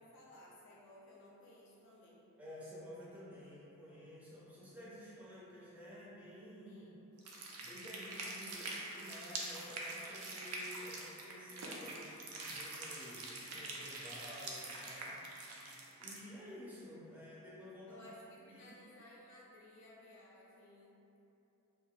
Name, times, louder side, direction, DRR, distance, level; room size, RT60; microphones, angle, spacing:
voice 1, 0.0-2.3 6.6-7.0 17.9-21.0, left 1 dB, 55° left, -5 dB, 0.4 m, -58 dB
voice 2, 2.4-6.8 7.6-15.2 16.0-18.0 18.4-18.7, equal, 5° right, -8 dB, 0.5 m, -52 dB
sound 1, 7.2-16.2, right 2 dB, 90° right, 0.5 m, -45 dB
2.5 x 2.1 x 3.6 m, 2.9 s
head